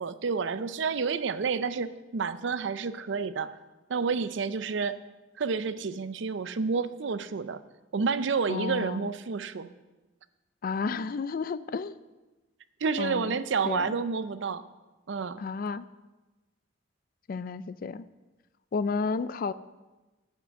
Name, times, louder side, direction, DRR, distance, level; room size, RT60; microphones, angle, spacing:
voice 1, 0.0-3.5 3.9-5.0 5.4-7.6 7.9-9.7 12.8-14.6 15.1-15.4, right 5 dB, 65° right, 13 dB, 0.5 m, -29 dB
voice 2, 8.5-9.1 10.6-12.0 13.0-14.0 15.4-15.9 17.3-18.1 18.7-19.5, left 4 dB, 45° left, 16 dB, 0.4 m, -32 dB
9.3 x 5.9 x 7.4 m, 1.1 s
head